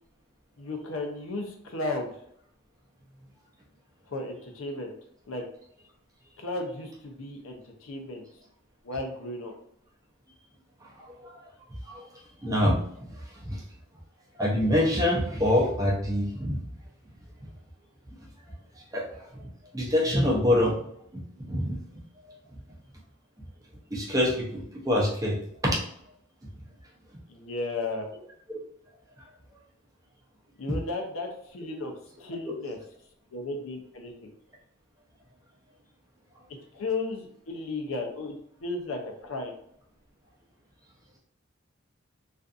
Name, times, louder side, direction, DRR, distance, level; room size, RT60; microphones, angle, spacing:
voice 1, 0.6-2.2 4.1-4.9 5.3-5.4 6.4-8.2 8.8-9.5 27.3-28.1 30.6-31.9 32.2-32.8 33.3-34.3 36.7-38.3 38.6-39.5, left 2 dB, 80° left, 3 dB, 0.6 m, -34 dB
voice 2, 12.4-13.0 13.4-13.6 14.4-16.6 18.9-19.5 19.7-20.8 21.1-21.8 23.9-25.4 25.7-25.8 28.5-28.6, left 1 dB, 15° right, -3 dB, 0.6 m, -25 dB
2.6 x 2.4 x 2.4 m, 0.69 s
head